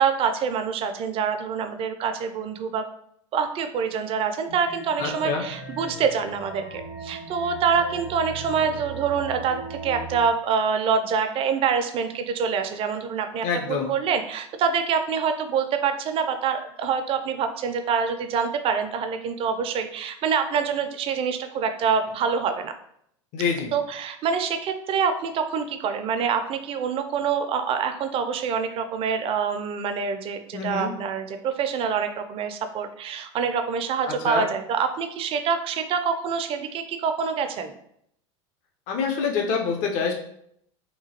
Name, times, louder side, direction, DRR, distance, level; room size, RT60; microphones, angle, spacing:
voice 1, 0.0-2.9 3.3-22.7 23.7-37.8, right 6 dB, 35° right, 7 dB, 0.4 m, -26 dB
sound 1, 4.5-10.2, right 3 dB, 75° left, 1.1 m, -38 dB
voice 2, 5.0-5.4 13.4-13.9 23.3-23.7 30.5-30.9 34.1-34.5 38.9-40.1, left 5 dB, 50° left, 1 dB, 0.6 m, -26 dB
2.9 x 2.2 x 2.8 m, 0.70 s
hypercardioid pair, 90°, 16 cm